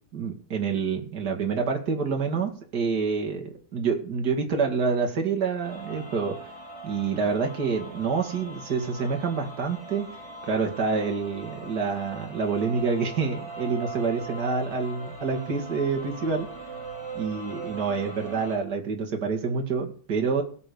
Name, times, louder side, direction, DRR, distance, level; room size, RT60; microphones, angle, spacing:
voice 1, 0.1-6.4 6.8-10.1 10.4-16.5 17.2-20.4, right 5 dB, 55° right, 2 dB, 2.7 m, -27 dB
sound 1, 5.6-18.6, right 3 dB, 15° right, 6.0 m, -40 dB
17.0 x 6.1 x 6.9 m, 0.43 s
omnidirectional pair, 2.2 m